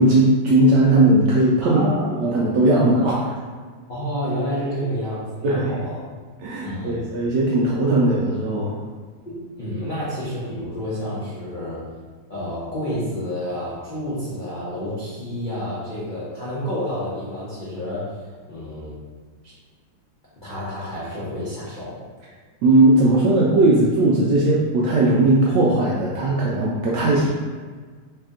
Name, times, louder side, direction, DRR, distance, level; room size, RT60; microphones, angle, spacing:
voice 1, 0.0-1.9 2.2-3.4 5.4-5.8 6.4-8.7 22.6-27.3, right 2 dB, 80° right, -4 dB, 0.9 m, -18 dB
voice 2, 1.6-2.3 3.9-6.0 6.6-7.0 9.2-11.8 12.3-19.0 19.4-19.5 20.4-22.0, equal, 75° left, -10 dB, 0.4 m, -29 dB
3.3 x 2.8 x 3.5 m, 1.5 s
omnidirectional pair, 2.3 m